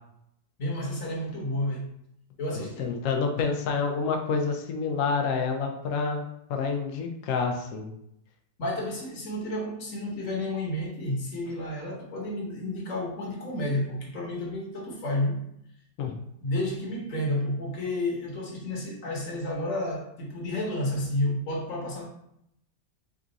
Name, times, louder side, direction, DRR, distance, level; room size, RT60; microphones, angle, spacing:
voice 1, 0.6-1.9 2.4-2.9 8.6-15.4 16.4-22.0, left 1 dB, 50° left, -2 dB, 1.2 m, -31 dB
voice 2, 2.6-6.2 6.5-7.9 16.0-16.2, left 5 dB, 90° left, 3 dB, 0.7 m, -28 dB
3.6 x 2.4 x 3.9 m, 0.76 s
omnidirectional pair, 2.0 m